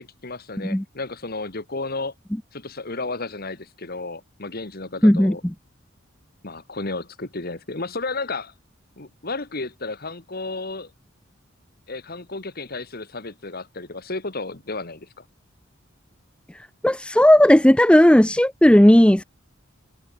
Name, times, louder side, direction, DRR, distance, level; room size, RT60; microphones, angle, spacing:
voice 1, 0.0-2.1 2.5-5.4 6.4-8.5 9.0-10.9 11.9-15.2, left 3 dB, 50° left, 2.1 m, -33 dB
voice 2, 5.0-5.3 16.8-19.2, left 1 dB, 5° left, 0.5 m, -14 dB
head